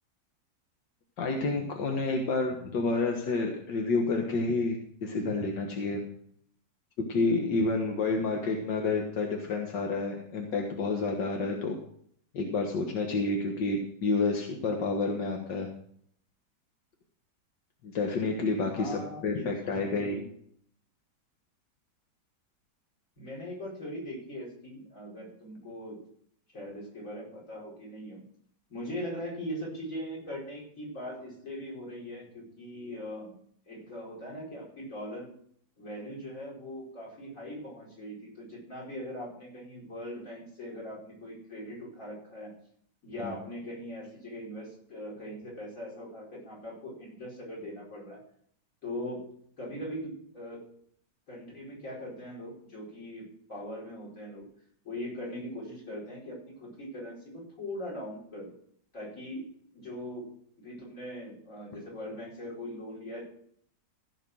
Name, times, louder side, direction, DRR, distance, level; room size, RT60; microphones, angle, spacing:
voice 1, 1.2-6.0 7.1-11.8 12.3-15.7 17.8-20.2 43.2-43.3, left 3 dB, 85° left, 2 dB, 2.1 m, -29 dB
voice 2, 18.8-20.2 23.2-26.0 26.5-28.2 28.7-33.4 33.7-35.3 35.8-42.5 43.0-48.2 48.8-49.3 49.6-50.6 51.3-54.5 54.8-58.5 58.9-63.2, equal, 50° left, -3 dB, 5.5 m, -40 dB
15.5 x 6.0 x 6.2 m, 0.64 s
omnidirectional pair, 1.9 m